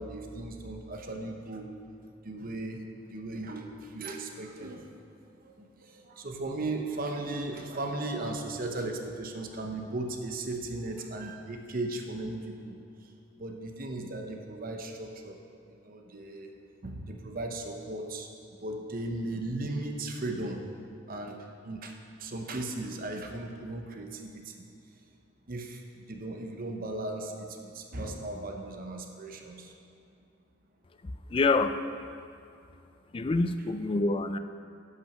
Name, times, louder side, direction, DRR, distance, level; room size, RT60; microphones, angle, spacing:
voice 1, 0.0-1.7 2.2-2.8 3.1-4.9 6.1-12.8 13.4-15.4 15.7-16.5 16.8-18.3 18.6-20.6 21.1-21.4 21.6-21.9 22.2-24.5 25.5-25.8 26.1-29.7, right 2 dB, 45° right, 3 dB, 0.8 m, -36 dB
voice 2, 31.0-32.1 33.1-34.4, left 3 dB, 25° left, 9 dB, 0.3 m, -27 dB
11.0 x 5.8 x 6.0 m, 2.4 s
head